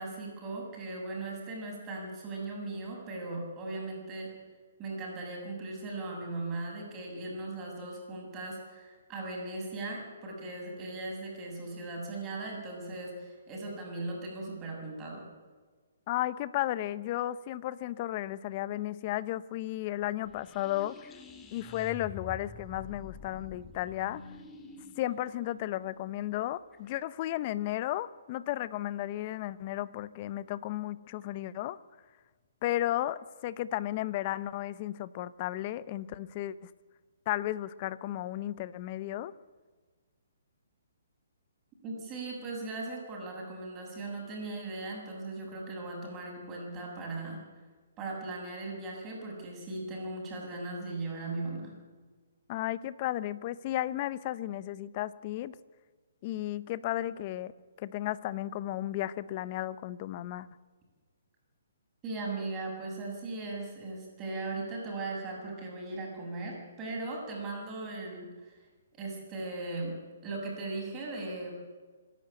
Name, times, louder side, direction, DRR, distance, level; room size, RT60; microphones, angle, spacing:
voice 1, 0.0-4.3 4.8-15.3 41.8-47.4 48.0-51.8 62.0-68.6 69.0-70.0 70.2-71.5, right 2 dB, 20° right, -1 dB, 7.3 m, -38 dB
voice 2, 16.1-21.1 21.5-24.2 25.0-31.8 32.6-36.7 37.3-39.3 52.5-55.5 56.2-57.5 57.8-60.5, left 14 dB, 35° left, 17 dB, 0.8 m, -34 dB
sound 1, 20.2-27.0, left 4 dB, 15° left, 2.1 m, -48 dB
25.5 x 11.5 x 9.1 m, 1.4 s
hypercardioid pair, 145°, 0 cm